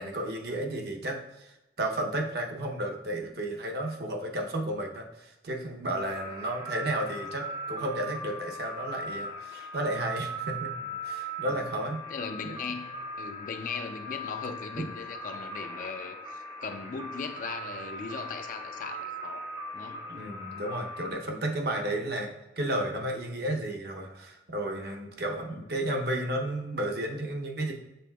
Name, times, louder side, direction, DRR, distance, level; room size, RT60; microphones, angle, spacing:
voice 1, 0.0-10.7 11.0-12.0 14.7-14.9 20.1-27.7, right 1 dB, 65° right, 1 dB, 0.7 m, -33 dB
sound 1, 6.1-21.1, equal, 25° right, 0.6 m, -39 dB
voice 2, 12.1-12.9 13.2-20.1 25.5-25.6, left 5 dB, 50° left, 7 dB, 0.4 m, -38 dB
6.8 x 3.4 x 2.3 m, 0.97 s
head